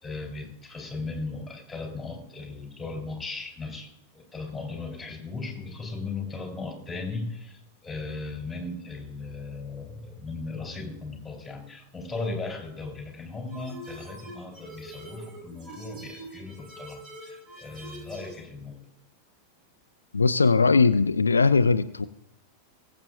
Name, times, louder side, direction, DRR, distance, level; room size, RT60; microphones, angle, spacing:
voice 1, 0.0-18.8, left 3 dB, 10° left, 0 dB, 3.7 m, -37 dB
sound 1, 13.5-18.4, right 1 dB, 30° right, 4.3 m, -44 dB
voice 2, 20.1-22.1, left 4 dB, 75° left, 12 dB, 0.4 m, -20 dB
21.0 x 7.8 x 2.6 m, 0.87 s
figure-of-eight pair, 90°, 0 cm